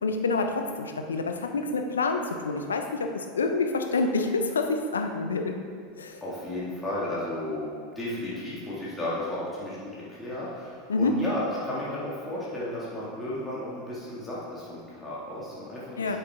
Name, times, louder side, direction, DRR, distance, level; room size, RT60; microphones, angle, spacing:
voice 1, 0.0-5.6 6.0-6.2 10.9-11.1 16.0-16.2, left 3 dB, 75° left, 5 dB, 0.7 m, -27 dB
voice 2, 6.2-9.8 10.1-16.2, left 1 dB, 10° left, -8 dB, 2.1 m, -34 dB
7.9 x 7.6 x 3.6 m, 2.1 s
figure-of-eight pair, 80°, 0 cm